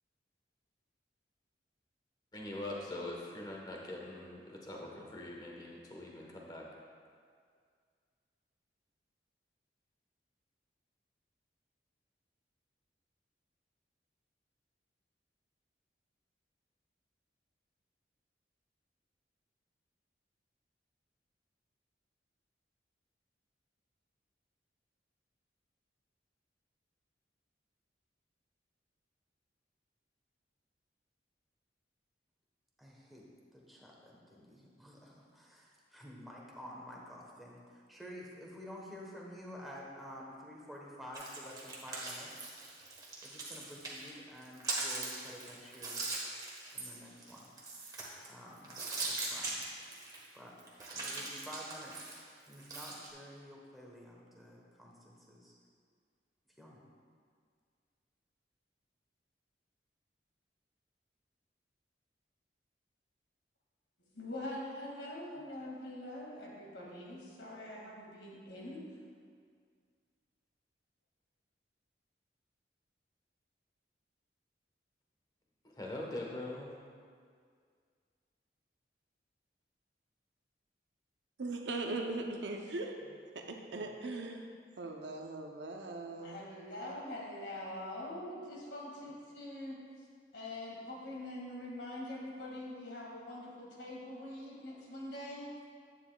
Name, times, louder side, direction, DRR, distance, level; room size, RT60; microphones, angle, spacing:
voice 1, 2.3-6.7 75.6-76.7, left 1 dB, 20° left, -1 dB, 1.1 m, -43 dB
voice 2, 32.8-33.3 33.5-42.3 43.2-46.0 46.7-47.5 48.3-49.6 50.3-50.6 50.9-51.9 52.5-55.6 56.6-56.8, equal, ahead, -3 dB, 1.1 m, -50 dB
sound 1, 41.1-44.1 44.4-48.3 48.6-50.3 50.6-53.1, right 2 dB, 20° right, 1.3 m, -40 dB
voice 3, 64.0-68.8 83.7-83.8 86.2-89.8 90.3-95.5, left 1 dB, 80° left, -3 dB, 2.1 m, -44 dB
voice 4, 81.4-84.5 84.8-86.5, right 2 dB, 80° right, 2 dB, 0.7 m, -40 dB
11.0 x 9.2 x 2.3 m, 2.1 s
head